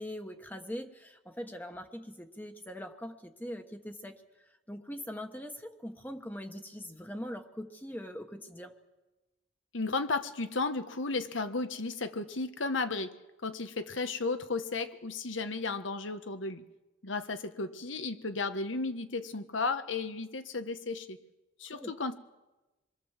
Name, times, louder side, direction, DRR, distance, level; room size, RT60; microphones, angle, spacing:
voice 1, 0.0-8.7 21.7-21.9, equal, 10° left, 5 dB, 1.2 m, -42 dB
voice 2, 9.7-13.1 13.4-16.6 17.0-21.2 21.6-22.1, left 3 dB, 90° left, 9 dB, 1.4 m, -34 dB
27.0 x 22.5 x 7.4 m, 1.1 s
head